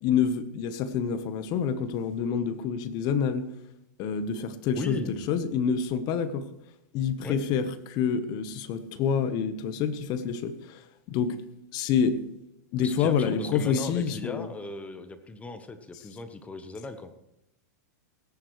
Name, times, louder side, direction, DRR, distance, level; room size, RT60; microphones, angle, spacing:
voice 1, 0.0-3.5 4.0-6.5 6.9-11.4 11.7-12.2 12.7-14.5, left 7 dB, 45° left, 12 dB, 1.1 m, -27 dB
voice 2, 4.7-5.2 7.2-7.4 12.8-17.1, left 3 dB, 15° left, 9 dB, 1.0 m, -37 dB
18.5 x 10.5 x 3.2 m, 0.80 s
hypercardioid pair, 120°, 10 cm